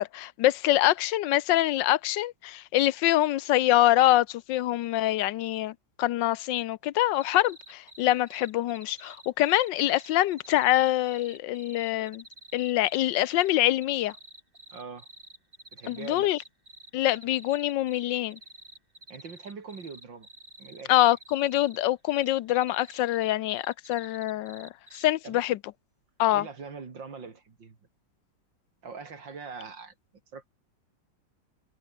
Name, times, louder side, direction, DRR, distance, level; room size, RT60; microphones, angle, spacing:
voice 1, 0.0-12.2 12.5-14.1 15.9-16.4 16.9-18.4 20.9-25.6 26.2-26.4, left 15 dB, 90° left, 1.4 m, -25 dB
sound 1, 7.1-25.3, right 1 dB, 30° right, 6.5 m, -50 dB
voice 2, 14.7-15.1 15.7-16.3 19.1-20.3 20.6-21.0 25.2-25.4 26.3-27.8 28.8-29.9 30.3-30.5, right 5 dB, 90° right, 3.6 m, -42 dB
omnidirectional pair, 1.9 m